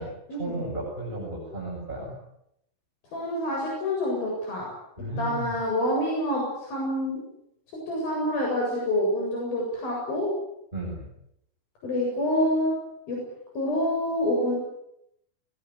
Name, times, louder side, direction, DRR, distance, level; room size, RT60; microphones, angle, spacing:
voice 1, 0.0-2.2 5.0-5.5 10.7-11.1, right 1 dB, 10° right, -4 dB, 7.7 m, -34 dB
voice 2, 3.1-4.7 5.2-7.2 7.9-10.3 11.8-12.7 13.1-13.2 13.5-14.6, left 1 dB, 70° left, -2 dB, 9.5 m, -27 dB
22.5 x 21.0 x 9.8 m, 0.78 s
omnidirectional pair, 4.3 m